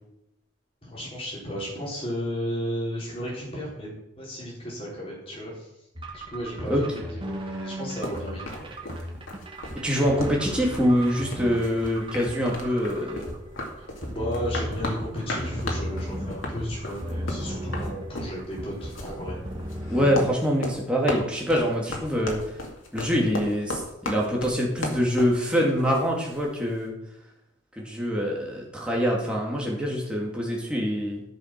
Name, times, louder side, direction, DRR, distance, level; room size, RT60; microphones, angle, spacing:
voice 1, 0.8-3.9 4.2-5.7 6.1-8.7 13.8-19.4, equal, 30° left, -4 dB, 4.1 m, -34 dB
sound 1, 5.9-20.3, equal, 25° right, 1.8 m, -35 dB
sound 2, 8.0-26.5, left 1 dB, 90° left, 2.3 m, -35 dB
voice 2, 9.8-13.3 19.9-22.4 22.9-27.0 27.8-31.2, equal, 5° right, -2 dB, 2.4 m, -25 dB
13.5 x 6.4 x 6.0 m, 0.84 s
head